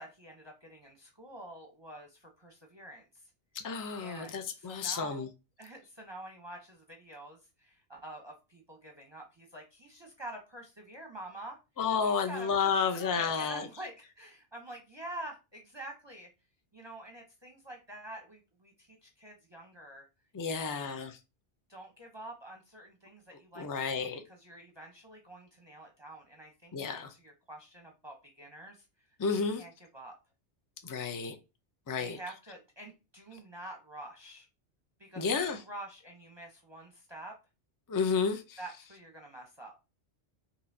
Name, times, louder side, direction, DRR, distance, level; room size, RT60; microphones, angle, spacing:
voice 1, 0.0-3.3 4.0-5.3 5.6-11.6 12.0-16.3 16.7-20.1 20.4-20.8 21.7-30.2 32.0-34.5 35.0-37.4 38.6-39.7, right 1 dB, 25° right, 0.7 m, -47 dB
voice 2, 3.6-5.3 11.8-13.7 20.3-21.2 23.6-24.2 26.7-27.1 29.2-29.6 30.8-31.4 31.9-32.2 35.2-35.6 37.9-38.6, left 5 dB, 30° left, 0.3 m, -31 dB
5.5 x 2.8 x 2.6 m
omnidirectional pair, 1.2 m